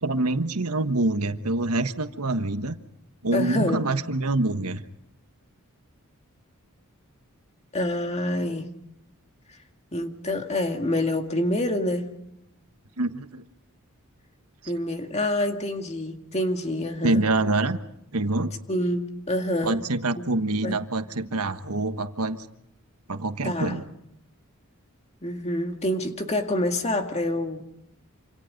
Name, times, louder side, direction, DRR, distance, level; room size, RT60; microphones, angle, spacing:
voice 1, 0.0-2.8 3.2-4.8 13.0-13.4 17.0-17.8 18.1-18.5 19.6-22.4 23.1-23.8, right 2 dB, 85° right, 9 dB, 1.4 m, -25 dB
voice 2, 3.3-3.8 7.7-8.7 9.9-12.1 14.7-17.2 18.7-19.8 20.1-20.3 20.6-20.8 23.4-23.8 25.2-27.6, left 1 dB, 30° left, 5 dB, 2.0 m, -27 dB
27.5 x 27.0 x 5.3 m, 0.79 s
head